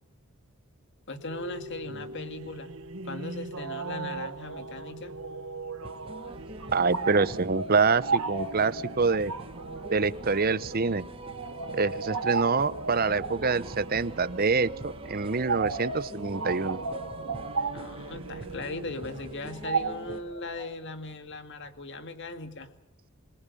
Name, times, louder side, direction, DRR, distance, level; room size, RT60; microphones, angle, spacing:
voice 1, 1.1-2.7 3.0-5.1 17.7-22.7, left 2 dB, 55° left, 9 dB, 2.1 m, -38 dB
sound 1, 1.3-19.9, right 3 dB, 65° right, 1.2 m, -42 dB
sound 2, 5.8-20.2, right 2 dB, 25° right, 1.2 m, -44 dB
sound 3, 6.3-20.6, right 4 dB, 90° right, 2.6 m, -35 dB
voice 2, 6.7-9.3 9.9-11.0 11.8-16.8, right 4 dB, 40° right, 16 dB, 0.8 m, -26 dB
28.0 x 21.0 x 5.5 m, 0.80 s
head